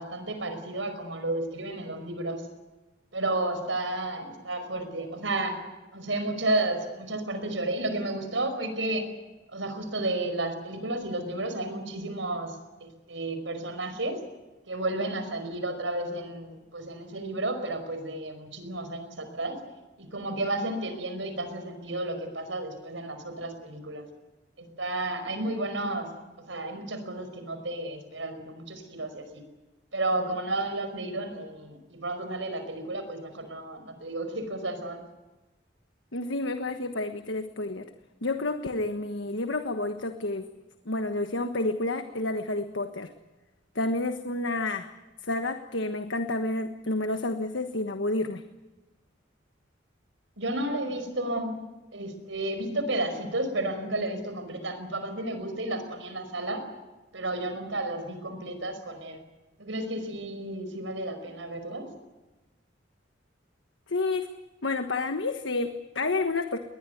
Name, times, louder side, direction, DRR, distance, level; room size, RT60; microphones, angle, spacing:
voice 1, 0.0-2.4 3.1-5.6 5.9-9.0 9.5-14.2 14.7-19.6 20.0-24.0 24.6-26.1 26.5-29.4 29.9-35.0 50.4-51.6 51.9-56.6 57.1-59.2 59.6-61.9, right 2 dB, 80° right, 8 dB, 5.3 m, -32 dB
voice 2, 36.1-37.9 38.2-40.4 40.8-43.1 43.7-44.9 45.2-48.4 63.9-64.3 64.6-66.6, left 2 dB, 80° left, 7 dB, 1.4 m, -30 dB
21.5 x 20.0 x 9.4 m, 1.1 s
head